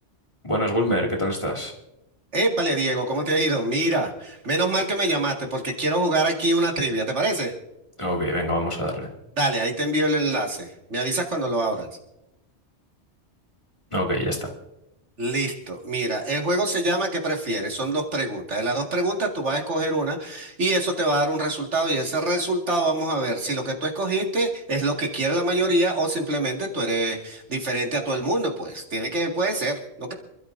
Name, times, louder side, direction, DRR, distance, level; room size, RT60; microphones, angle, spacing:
voice 1, 0.4-1.7 8.0-9.1 13.9-14.4, equal, 25° left, -1 dB, 2.2 m, -25 dB
voice 2, 2.3-7.5 9.4-11.9 15.2-30.1, right 2 dB, 75° right, 1 dB, 2.3 m, -25 dB
27.5 x 12.5 x 2.6 m, 0.88 s
omnidirectional pair, 1.2 m